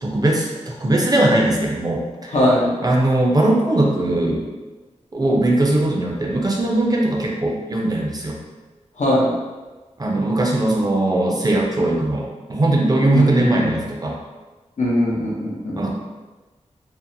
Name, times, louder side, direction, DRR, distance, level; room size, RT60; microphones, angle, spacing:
voice 1, 0.0-2.3 2.8-4.5 5.1-8.4 10.0-14.2 15.8-15.9, right 1 dB, 30° right, -1 dB, 0.4 m, -20 dB
voice 2, 2.3-2.7 9.0-9.3 13.1-13.7 14.8-15.9, left 1 dB, 70° left, -5 dB, 0.7 m, -20 dB
2.6 x 2.1 x 2.6 m, 1.2 s
wide cardioid pair, 70°, 12 cm